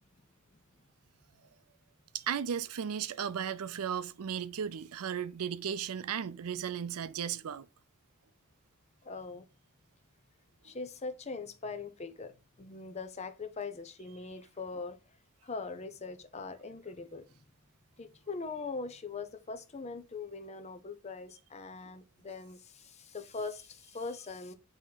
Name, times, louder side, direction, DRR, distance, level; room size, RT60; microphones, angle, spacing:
voice 1, 2.1-7.7, right 8 dB, 80° right, 0.5 m, -35 dB
voice 2, 9.0-9.5 10.6-15.2 15.4-17.4 18.0-24.5, left 4 dB, 30° left, 0.6 m, -41 dB
8.6 x 3.0 x 3.9 m
head